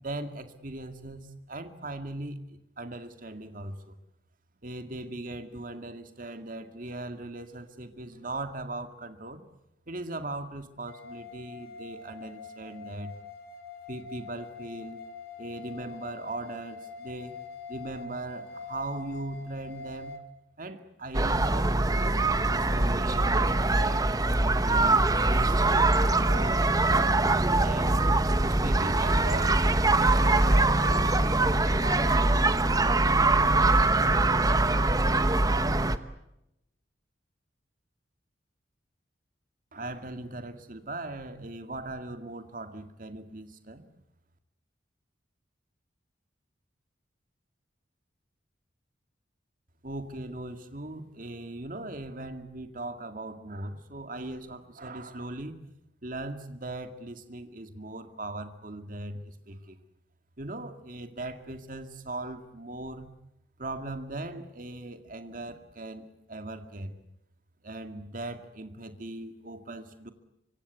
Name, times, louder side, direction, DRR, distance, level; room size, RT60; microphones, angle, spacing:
voice 1, 0.0-2.4 2.8-4.0 4.6-9.4 9.9-13.1 13.9-15.0 15.4-17.4 17.7-20.2 20.6-22.2 22.5-24.1 24.4-25.0 25.3-33.3 39.7-43.9 49.8-55.6 56.0-59.8 60.4-63.1 63.6-67.0 67.6-70.1, right 2 dB, 45° right, 8 dB, 2.2 m, -39 dB
sound 1, 10.9-20.2, left 5 dB, 55° left, 2.5 m, -44 dB
sound 2, 21.1-36.0, right 2 dB, 20° right, 1.0 m, -23 dB
sound 3, 24.9-34.7, left 1 dB, 20° left, 3.1 m, -47 dB
25.0 x 24.5 x 8.3 m, 0.88 s
head